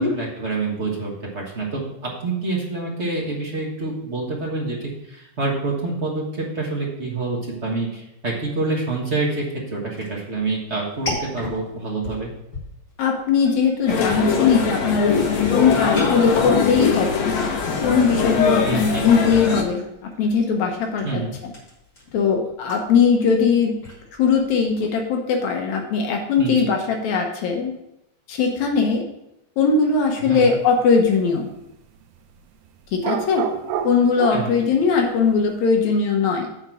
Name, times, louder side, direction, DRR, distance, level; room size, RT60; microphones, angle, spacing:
voice 1, 0.0-1.8 2.2-12.3 18.6-19.1 21.0-21.3 26.4-26.6 30.2-30.5 34.3-34.5, right 3 dB, 40° right, -4 dB, 1.0 m, -27 dB
sound 1, 10.0-25.0, left 1 dB, 30° left, 2.3 m, -39 dB
voice 2, 13.0-15.2 15.5-17.1 17.8-19.8 20.2-21.5 22.1-23.8 24.2-27.7 28.3-29.0 29.6-31.5 32.9-33.5 33.8-36.5, left 5 dB, 75° left, 2 dB, 2.2 m, -20 dB
sound 2, 13.9-19.6, left 6 dB, 60° left, 1.6 m, -21 dB
sound 3, 30.4-30.6 33.0-34.5, right 9 dB, 90° right, 2.0 m, -28 dB
8.6 x 4.0 x 6.1 m, 0.84 s
omnidirectional pair, 3.3 m